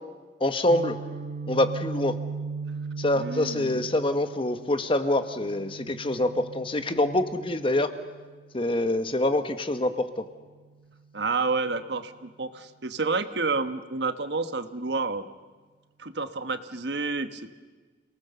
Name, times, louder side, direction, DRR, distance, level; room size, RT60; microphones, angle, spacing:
voice 1, 0.4-1.0 1.5-2.2 3.0-7.9 8.5-10.2, left 1 dB, 30° left, 10 dB, 1.2 m, -25 dB
Guitar, 0.7-8.5, right 4 dB, 45° right, 0.7 m, -38 dB
voice 2, 3.1-3.8 11.1-15.3 16.0-17.5, right 3 dB, 70° right, 10 dB, 1.2 m, -29 dB
28.5 x 19.0 x 6.8 m, 1.4 s
head